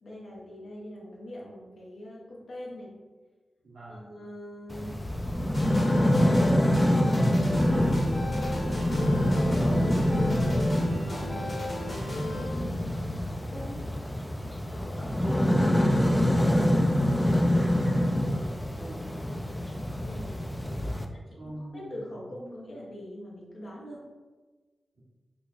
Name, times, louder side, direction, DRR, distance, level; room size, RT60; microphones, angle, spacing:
voice 1, 0.0-2.9 3.9-5.0 6.9-7.4 8.2-10.0 11.0-11.5 12.3-13.9 14.7-15.2 17.1-17.4 18.1-18.5 19.8-20.3 21.0-24.0, left 1 dB, 80° left, -4 dB, 0.9 m, -43 dB
voice 2, 3.6-4.0 15.0-15.8 16.4-18.5 18.7-19.0 20.8-21.1 21.4-22.2 24.9-25.0, right 1 dB, 80° right, -8 dB, 1.3 m, -43 dB
sound 1, 4.7-21.1, left 1 dB, 20° left, 0.4 m, -26 dB
sound 2, 5.5-12.4, left 1 dB, 55° left, 1.3 m, -35 dB
5.0 x 2.0 x 2.5 m, 1.3 s
cardioid pair, 50°, 0 cm